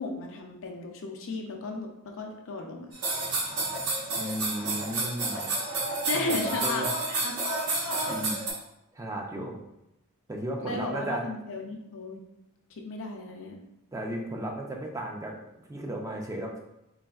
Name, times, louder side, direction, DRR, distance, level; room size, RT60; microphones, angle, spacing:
voice 1, 0.0-2.9 6.1-7.4 10.6-12.2 12.7-13.6, left 3 dB, 60° left, 2 dB, 0.5 m, -35 dB
sound 1, 2.9-8.5, right 2 dB, 90° right, 1.1 m, -30 dB
voice 2, 4.2-5.4 6.1-6.9 8.1-8.4 8.9-9.6 10.3-11.3 13.9-15.4 15.7-16.6, right 1 dB, 15° right, 1 dB, 0.4 m, -34 dB
3.9 x 3.3 x 2.3 m, 0.88 s
head